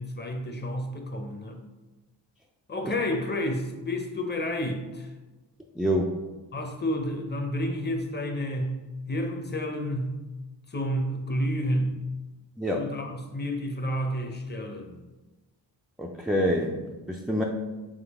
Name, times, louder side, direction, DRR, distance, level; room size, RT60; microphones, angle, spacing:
voice 1, 0.0-1.6 2.7-5.1 6.5-8.8 9.1-10.2 10.7-12.0 12.7-15.0, equal, 25° left, 4 dB, 0.7 m, -30 dB
voice 2, 5.8-6.2 12.6-12.9 16.0-17.4, equal, ahead, -1 dB, 0.3 m, -27 dB
3.8 x 3.4 x 3.5 m, 1.1 s
cardioid pair, 55°, 45 cm